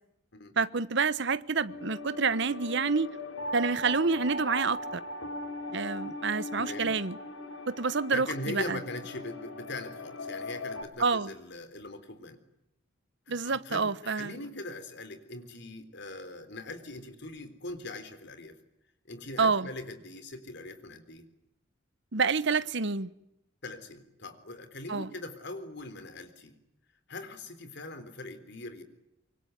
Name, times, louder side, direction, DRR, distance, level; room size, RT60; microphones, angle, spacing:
voice 1, 0.6-3.1 3.5-5.0 5.7-7.2 7.7-8.8 11.0-11.3 13.3-14.4 19.4-19.7 22.1-23.1 24.9-25.1, right 4 dB, 60° right, 1.1 m, -28 dB
sound 1, 1.7-10.8, left 2 dB, 85° left, 3.4 m, -39 dB
voice 2, 6.6-6.9 8.1-12.4 13.3-18.6 19.1-21.3 23.6-26.6 27.1-28.8, left 2 dB, 60° left, 3.8 m, -41 dB
25.5 x 23.5 x 9.5 m
head